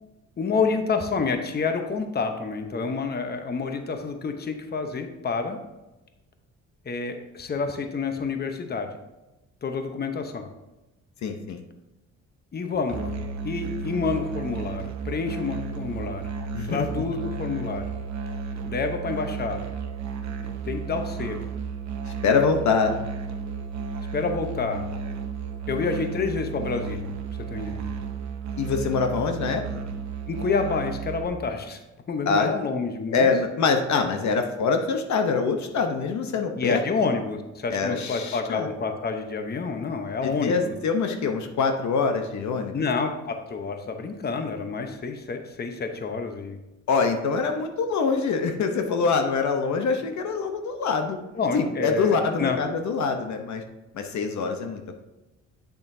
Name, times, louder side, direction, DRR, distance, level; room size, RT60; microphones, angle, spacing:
voice 1, 0.4-5.6 6.9-8.9 9.6-10.5 12.5-13.1 13.4-16.3 16.7-17.9 18.7-19.6 20.6-21.4 24.1-24.9 25.7-27.1 27.5-27.8 30.3-31.8 32.1-33.3 36.6-40.8 42.7-46.6 51.4-52.6, left 4 dB, 35° left, 6 dB, 0.9 m, -28 dB
voice 2, 11.2-11.6 16.5-16.9 22.2-23.0 28.6-29.6 32.3-32.5 33.1-36.8 37.7-38.7 40.2-42.7 46.9-51.2 51.5-53.6 53.9-55.0, left 5 dB, 65° left, 5 dB, 0.9 m, -24 dB
Musical instrument, 12.9-31.3, right 5 dB, 65° right, 0.9 m, -33 dB
8.1 x 6.9 x 2.7 m, 1.0 s
cardioid pair, 90°, 30 cm